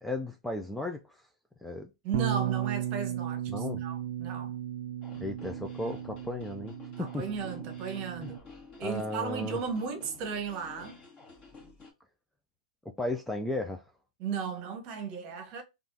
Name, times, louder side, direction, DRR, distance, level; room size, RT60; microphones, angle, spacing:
voice 1, 0.0-1.3 1.6-1.9 3.5-3.8 5.2-7.2 8.2-8.3 8.8-9.6 13.0-13.8, left 1 dB, 5° left, 0.3 m, -35 dB
voice 2, 2.0-4.6 7.0-8.4 8.8-11.0 14.2-15.6, right 5 dB, 35° right, 1.0 m, -35 dB
Bass guitar, 2.1-8.4, right 11 dB, 55° right, 0.5 m, -35 dB
sound 1, 5.0-11.9, left 4 dB, 25° left, 1.6 m, -52 dB
3.5 x 2.4 x 2.7 m
hypercardioid pair, 135°, 4 cm